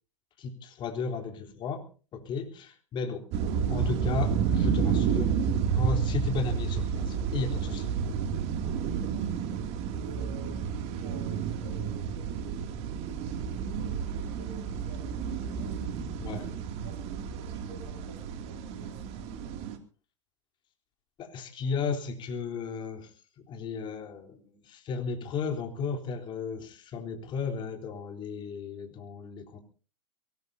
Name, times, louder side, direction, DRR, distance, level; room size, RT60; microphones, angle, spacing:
voice 1, 0.4-1.9 2.1-5.3 5.7-7.9 16.2-16.5 21.2-29.6, left 4 dB, 30° left, 4 dB, 3.7 m, -34 dB
sound 1, 3.3-19.8, right 7 dB, 40° right, 2.7 m, -31 dB
voice 2, 8.9-19.6, right 3 dB, 75° right, 3 dB, 5.7 m, -51 dB
23.0 x 19.0 x 2.8 m, 0.38 s
hypercardioid pair, 100°, 15 cm